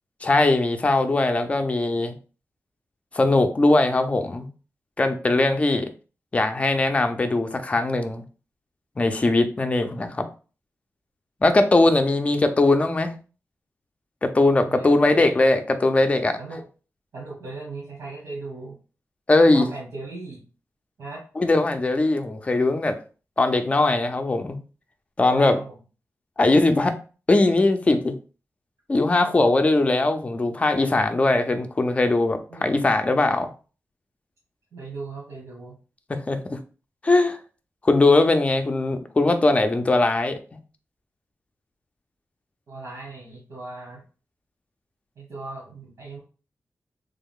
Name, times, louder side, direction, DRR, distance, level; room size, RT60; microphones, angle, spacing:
voice 1, 0.2-2.1 3.1-4.5 5.0-5.9 6.3-8.2 9.0-10.2 11.4-13.1 14.2-16.4 19.3-19.7 21.4-23.0 23.4-24.6 25.2-25.6 26.4-27.0 27.3-28.2 28.9-33.5 36.1-36.6 37.0-37.4 37.8-40.4, left 2 dB, 25° left, 7 dB, 0.4 m, -20 dB
voice 2, 5.3-5.6 14.6-15.4 16.4-16.7 17.1-18.8 19.5-20.5 21.0-21.2 25.3-25.7 29.3-29.4 32.5-32.7 34.7-35.8 42.7-44.0 45.1-46.2, right 3 dB, 85° right, -5 dB, 1.4 m, -38 dB
3.4 x 2.3 x 3.6 m, 0.36 s
wide cardioid pair, 135°, 5 cm